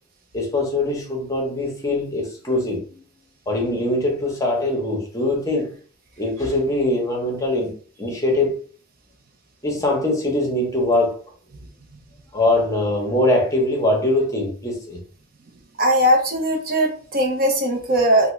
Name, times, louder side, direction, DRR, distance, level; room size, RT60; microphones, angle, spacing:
voice 1, 0.3-3.0 3.5-5.7 6.2-7.7 8.0-8.6 9.6-11.2 12.3-15.0, left 1 dB, 15° left, 0.8 m, -22 dB
voice 2, 15.8-18.3, equal, 45° right, 0.5 m, -19 dB
3.5 x 2.1 x 3.0 m
head